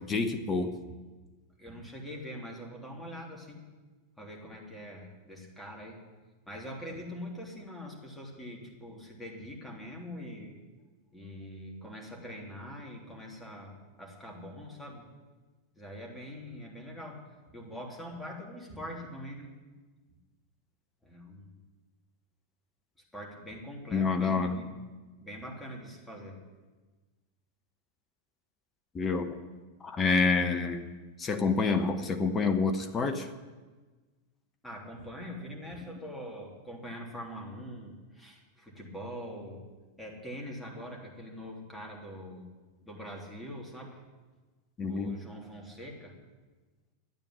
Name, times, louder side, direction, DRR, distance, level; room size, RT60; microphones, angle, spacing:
voice 1, 0.1-0.7 23.9-24.6 28.9-29.4 29.8-30.9 31.2-33.3 44.8-45.2, left 4 dB, 20° left, 7 dB, 1.1 m, -28 dB
voice 2, 1.6-3.7 4.2-6.0 6.5-10.6 11.1-15.1 15.7-19.5 21.0-21.5 23.1-24.7 25.2-26.4 34.6-39.6 40.0-42.5 42.8-44.0 44.9-46.2, equal, 5° left, -1 dB, 3.4 m, -43 dB
13.0 x 9.0 x 10.0 m, 1.3 s
figure-of-eight pair, 90°, 0 cm